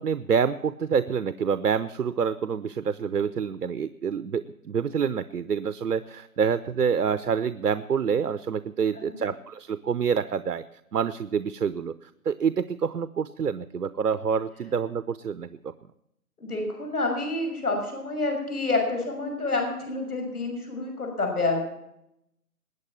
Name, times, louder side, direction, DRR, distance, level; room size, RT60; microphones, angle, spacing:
voice 1, 0.0-10.6 10.9-15.7, right 6 dB, 85° right, 13 dB, 0.8 m, -27 dB
voice 2, 16.4-21.6, left 3 dB, 75° left, 3 dB, 6.3 m, -28 dB
20.5 x 8.7 x 7.3 m, 0.80 s
hypercardioid pair, 175°, 45 cm